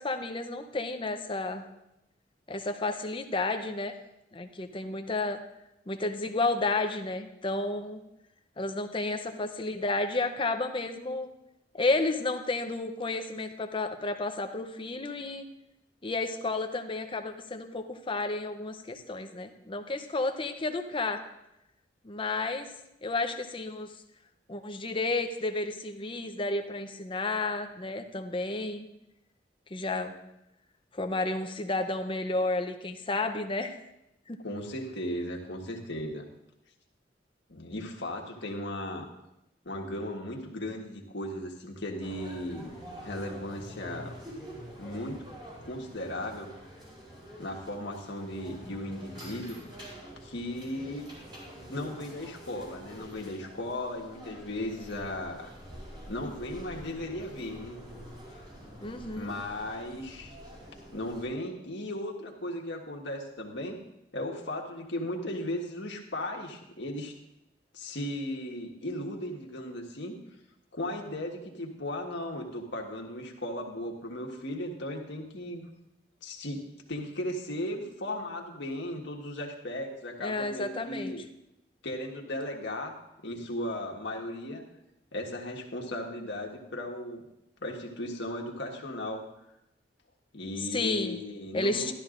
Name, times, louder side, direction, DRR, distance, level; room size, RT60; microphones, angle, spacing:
voice 1, 0.0-1.7 2.5-3.9 4.3-5.4 5.9-8.0 8.6-11.3 11.7-15.5 16.0-21.2 22.0-22.7 23.0-23.9 24.5-28.9 29.7-30.1 30.9-33.8 34.3-34.4 58.8-59.3 80.2-81.1 90.7-91.2 91.5-91.9, left 2 dB, 30° left, 7 dB, 0.7 m, -31 dB
voice 2, 34.4-36.3 37.5-39.1 39.6-42.7 43.0-44.2 44.8-45.2 45.6-46.5 47.4-49.6 50.2-51.1 51.7-55.5 56.1-57.8 59.1-60.4 60.9-63.8 64.1-67.1 67.7-70.1 70.7-75.7 76.2-76.6 76.9-81.2 81.8-83.0 83.2-84.6 85.1-87.2 87.6-89.2 90.3-91.9, left 1 dB, 70° left, 0 dB, 1.5 m, -36 dB
sound 1, 42.0-61.2, equal, 25° right, 4.3 m, -47 dB
13.5 x 12.0 x 2.5 m, 0.86 s
head